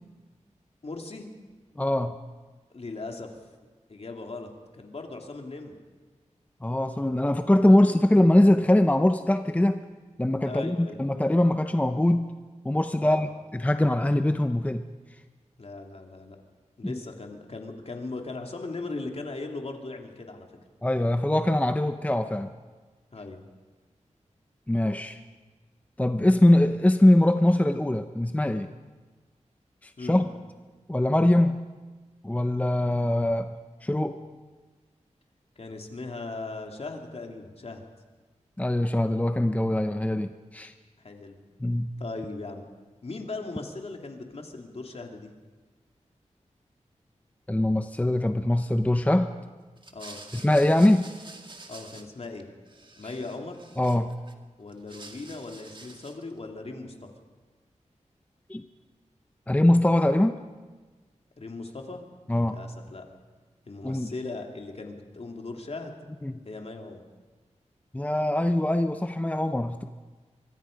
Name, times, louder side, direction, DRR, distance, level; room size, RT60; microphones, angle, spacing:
voice 1, 0.8-1.3 2.7-3.3 3.9-5.7 10.4-11.0 13.0-13.2 15.6-16.4 16.8-20.5 23.1-23.4 30.0-30.2 35.6-37.8 41.0-41.4 42.0-42.7 43.0-45.3 49.9-50.2 51.7-52.5 53.0-53.6 54.6-57.1 61.4-62.0 62.4-63.0 63.7-65.9 66.4-67.1, left 3 dB, 55° left, 3 dB, 2.7 m, -38 dB
voice 2, 1.8-2.2 6.6-9.8 10.2-12.3 12.6-14.9 16.8-17.0 20.8-22.5 24.7-25.2 26.0-28.7 29.8-30.2 30.9-31.7 32.2-33.6 33.8-34.2 38.6-40.7 41.6-41.9 47.5-49.3 50.3-51.1 53.8-54.1 58.5-58.6 59.5-60.4 62.3-62.6 63.8-64.1 66.2-66.4 67.9-69.9, left 1 dB, 10° left, 8 dB, 0.7 m, -22 dB
sound 1, 49.8-52.4 52.7-54.3 54.7-56.3, right 2 dB, 40° right, 2.0 m, -48 dB
24.5 x 24.0 x 5.2 m, 1.3 s
wide cardioid pair, 90°, 13 cm